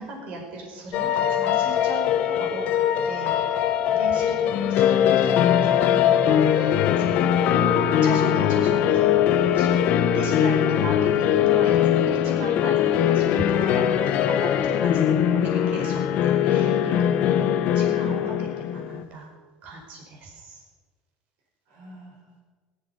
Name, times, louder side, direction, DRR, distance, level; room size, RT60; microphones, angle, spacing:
voice 1, 0.0-9.8 10.1-11.8 12.0-17.5 17.8-19.3 19.6-20.6, right 2 dB, 55° right, 1 dB, 5.0 m, -37 dB
sound 1, 0.9-19.0, left 9 dB, 55° left, 1.1 m, -21 dB
voice 2, 3.9-4.5 17.3-18.4 21.7-22.4, right 2 dB, 80° right, -2 dB, 4.6 m, -45 dB
17.0 x 13.0 x 5.4 m, 1.4 s
supercardioid pair, 125°, 3 cm